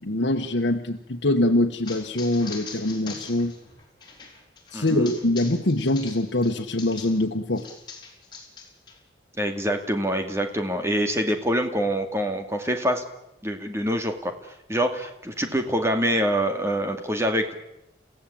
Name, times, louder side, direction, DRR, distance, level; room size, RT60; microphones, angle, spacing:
voice 1, 0.0-3.5 4.7-7.6, left 1 dB, 85° left, 2 dB, 1.3 m, -24 dB
sound 1, 1.8-7.2 7.5-8.9, left 5 dB, 25° left, 5.3 m, -42 dB
voice 2, 4.7-5.1 9.4-13.0 13.4-14.3 14.7-17.5, equal, 15° right, 5 dB, 2.3 m, -25 dB
29.5 x 16.0 x 8.8 m, 0.86 s
head